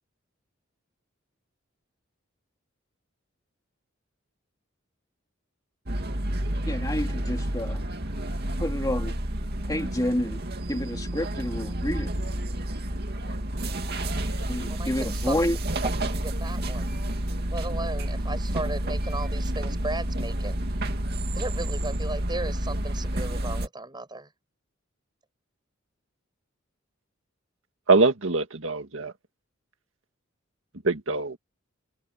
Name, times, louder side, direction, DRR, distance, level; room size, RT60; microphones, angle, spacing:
sound 1, 5.9-23.7, right 1 dB, 55° right, 2.4 m, -30 dB
voice 1, 6.7-7.8 8.6-9.1 9.7-10.4 10.7-12.1 14.5-15.6, left 1 dB, 20° left, 2.3 m, -29 dB
voice 2, 14.7-15.3 15.8-16.9 17.5-20.6 21.3-24.3, right 2 dB, 20° right, 6.8 m, -35 dB
voice 3, 27.9-29.1 30.8-31.4, right 3 dB, 70° right, 1.9 m, -23 dB
head